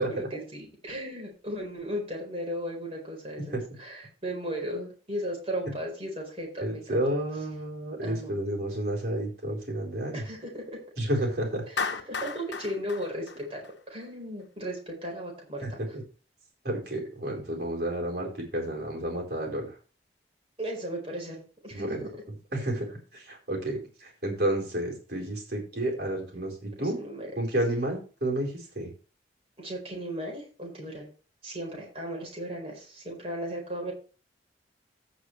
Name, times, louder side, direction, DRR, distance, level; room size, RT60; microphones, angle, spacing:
voice 1, 0.0-7.0 8.0-8.3 10.1-10.8 11.7-15.8 20.6-22.1 26.8-27.3 29.6-31.1 31.4-33.9, equal, 30° right, -1 dB, 4.5 m, -36 dB
voice 2, 6.6-10.2 11.0-11.7 15.6-16.0 16.6-19.7 21.7-27.0 27.4-28.9, right 1 dB, 55° right, 0 dB, 4.4 m, -31 dB
Clapping, 11.8-14.1, left 5 dB, 70° left, 1.1 m, -34 dB
16.0 x 6.1 x 3.3 m, 0.36 s
head